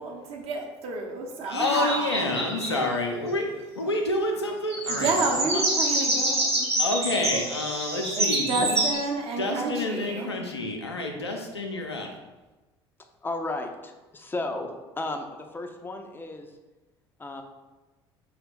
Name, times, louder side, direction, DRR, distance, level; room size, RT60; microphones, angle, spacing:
voice 1, 0.0-2.3 4.9-6.7 7.3-7.4 8.2-10.3, right 3 dB, 45° right, 0 dB, 0.7 m, -30 dB
voice 2, 1.4-3.5 3.8-5.1 5.5-5.6 6.8-8.8 9.4-12.1, left 2 dB, 85° left, 2 dB, 0.4 m, -28 dB
sound 1, 1.6-2.8 4.7-9.0, right 1 dB, 90° right, 0.8 m, -27 dB
voice 3, 13.2-14.7 15.0-16.5 17.2-17.4, left 2 dB, 15° left, 5 dB, 0.4 m, -33 dB
3.5 x 2.2 x 4.1 m, 1.1 s
figure-of-eight pair, 60°, 14 cm